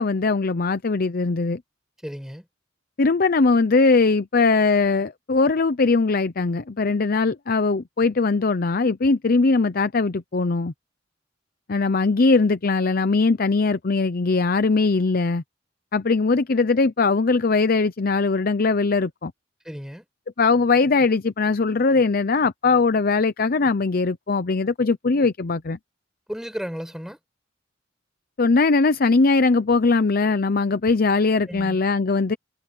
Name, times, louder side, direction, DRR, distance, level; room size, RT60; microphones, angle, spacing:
voice 1, 0.0-1.6 3.0-10.7 11.7-15.4 15.9-19.3 20.4-25.8 28.4-32.4, left 3 dB, 50° left, 0.7 m, -20 dB
voice 2, 2.0-2.4 19.6-20.1 26.3-27.2 31.5-31.8, equal, 5° right, 5.9 m, -33 dB
head